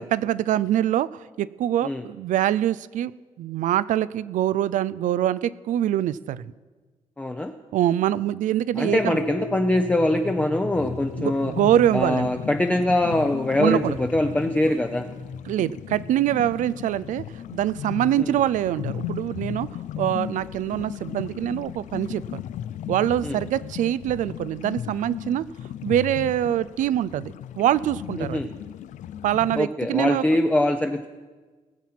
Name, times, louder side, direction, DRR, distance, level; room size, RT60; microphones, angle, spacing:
voice 1, 0.1-3.1 3.4-6.5 7.7-9.2 11.2-12.3 13.6-14.0 15.5-17.2 17.5-19.7 20.0-22.4 22.9-25.5 25.8-28.4 29.2-30.2, right 12 dB, 85° right, 18 dB, 0.4 m, -24 dB
voice 2, 7.2-7.5 8.8-11.5 11.9-15.1 18.2-18.4 23.2-23.4 28.2-28.5 29.6-31.1, left 1 dB, 10° left, 4 dB, 0.6 m, -23 dB
sound 1, 8.7-17.2, left 3 dB, 40° left, 0.9 m, -37 dB
sound 2, 10.7-29.6, left 11 dB, 80° left, 0.4 m, -36 dB
19.5 x 7.4 x 5.9 m, 1.3 s
cardioid pair, 115°, 13 cm